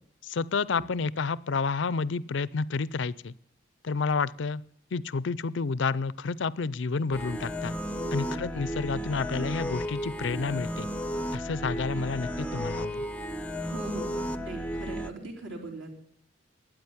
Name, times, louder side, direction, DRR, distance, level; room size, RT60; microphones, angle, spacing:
voice 1, 0.2-3.3 3.8-4.6 4.9-7.7 8.1-10.9 11.3-13.0, left 4 dB, 60° left, 20 dB, 0.5 m, -30 dB
sound 1, 7.1-15.1, equal, 5° left, 0.5 m, -34 dB
voice 2, 7.9-8.5 13.7-15.9, right 2 dB, 70° right, -2 dB, 4.2 m, -40 dB
12.5 x 9.2 x 9.6 m, 0.71 s
head